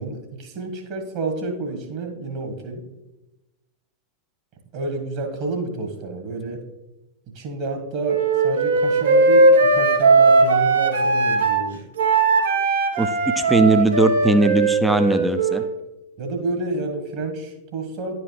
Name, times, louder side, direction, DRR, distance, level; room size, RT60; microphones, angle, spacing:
voice 1, 0.0-2.8 4.7-6.6 7.3-11.8 16.2-18.2, right 3 dB, 45° right, 3 dB, 1.5 m, -29 dB
Wind instrument woodwind instrument, 8.1-11.6 12.0-15.7, right 3 dB, 65° right, 0.9 m, -18 dB
voice 2, 13.4-15.6, right 2 dB, 5° right, 9 dB, 0.5 m, -19 dB
10.5 x 4.9 x 3.3 m, 1.0 s
figure-of-eight pair, 90°, 0 cm